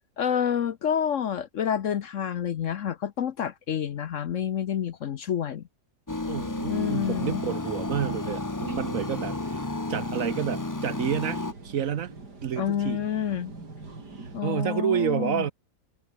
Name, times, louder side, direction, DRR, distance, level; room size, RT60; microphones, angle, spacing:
voice 1, 0.2-5.6 6.7-7.4 12.6-13.5 14.3-15.5, left 9 dB, 60° left, 1.0 m, -28 dB
sound 1, 6.1-11.5, left 2 dB, 15° left, 1.0 m, -32 dB
voice 2, 6.3-9.6 9.9-12.1 12.4-13.0 14.4-15.5, right 9 dB, 60° right, 1.2 m, -29 dB
sound 2, 8.7-14.4, right 3 dB, 85° right, 5.0 m, -45 dB
omnidirectional pair, 1.7 m